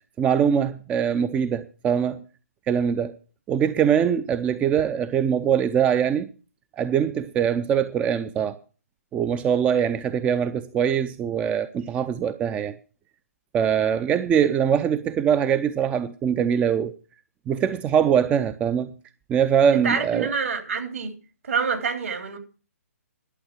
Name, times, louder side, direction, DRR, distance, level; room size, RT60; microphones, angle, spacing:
voice 1, 0.2-2.2 2.7-3.2 3.5-6.3 6.8-8.6 9.1-12.8 13.5-16.9 17.5-18.9 19.3-20.3, right 8 dB, 15° right, 0.5 m, -22 dB
voice 2, 19.7-21.1 21.4-22.4, right 5 dB, 60° right, 3.3 m, -27 dB
11.5 x 7.9 x 7.5 m
figure-of-eight pair, 130°, 8 cm